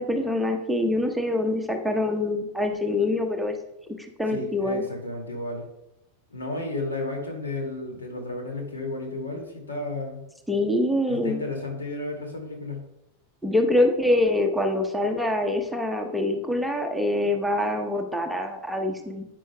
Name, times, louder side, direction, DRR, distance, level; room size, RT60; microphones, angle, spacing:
voice 1, 0.0-3.5 4.0-4.8 10.5-11.4 13.4-19.3, left 1 dB, ahead, 3 dB, 0.9 m, -25 dB
voice 2, 4.3-5.6 6.3-10.2 11.1-12.8, left 2 dB, 70° left, 2 dB, 2.2 m, -33 dB
11.0 x 9.1 x 2.3 m, 0.85 s
figure-of-eight pair, 90°, 0 cm